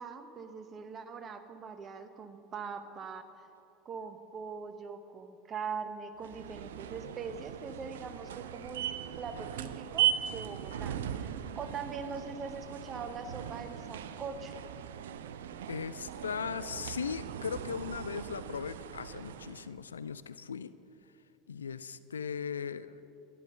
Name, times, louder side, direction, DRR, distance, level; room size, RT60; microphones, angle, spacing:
voice 1, 0.0-3.2 3.8-8.9 9.2-14.5, right 5 dB, 30° right, 8 dB, 1.0 m, -42 dB
sound 1, 6.2-19.7, right 10 dB, 65° right, 0.5 m, -38 dB
voice 2, 15.7-20.7 21.5-23.0, left 6 dB, 75° left, 15 dB, 0.4 m, -38 dB
11.5 x 10.5 x 6.7 m, 2.7 s
figure-of-eight pair, 75°, 0 cm